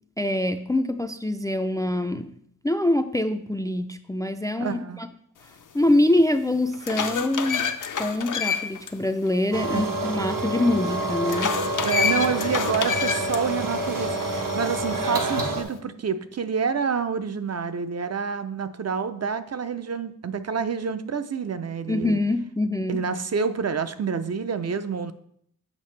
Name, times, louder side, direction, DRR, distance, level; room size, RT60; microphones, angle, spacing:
voice 1, 0.2-2.3 2.6-5.1 5.7-7.7 8.0-11.5 21.9-23.0, left 1 dB, 10° left, 9 dB, 0.3 m, -24 dB
voice 2, 4.6-5.0 9.7-10.0 11.8-22.2 22.9-25.1, right 6 dB, 50° right, 10 dB, 0.5 m, -28 dB
sound 1, 5.9-6.0 6.5-8.9 9.3-9.4 11.3-13.4, left 6 dB, 65° left, 0.6 m, -27 dB
sound 2, 9.5-15.6, right 1 dB, 75° right, 1.1 m, -28 dB
7.4 x 5.8 x 3.2 m, 0.68 s
wide cardioid pair, 85°, 33 cm